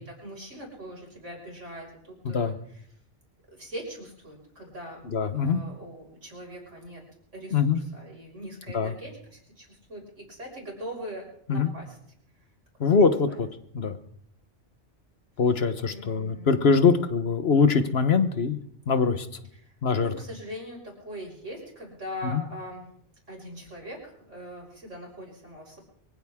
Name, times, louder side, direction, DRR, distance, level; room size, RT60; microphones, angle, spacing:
voice 1, 0.0-2.6 3.5-5.0 5.3-7.0 7.3-12.0 12.9-13.4 15.9-16.8 19.6-22.9 23.3-25.8, equal, 85° right, -1 dB, 6.1 m, -41 dB
voice 2, 2.2-2.6 5.0-5.6 7.5-7.8 8.7-8.9 11.5-11.7 12.8-13.5 13.7-14.0 15.4-18.6 18.9-19.3 19.8-20.1 22.3-22.4, left 5 dB, 60° left, 10 dB, 1.3 m, -23 dB
24.0 x 15.5 x 3.6 m, 0.69 s
omnidirectional pair, 1.2 m